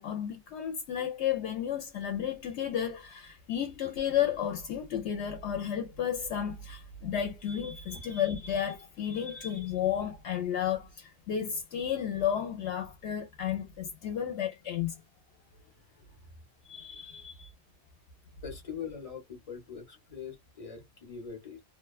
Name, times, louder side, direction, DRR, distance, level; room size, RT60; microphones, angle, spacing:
voice 1, 0.0-14.9 16.7-17.5, left 9 dB, 80° left, 0.9 m, -32 dB
voice 2, 15.3-16.2 18.4-21.6, left 7 dB, 35° left, 0.8 m, -43 dB
2.5 x 2.2 x 2.2 m
omnidirectional pair, 1.1 m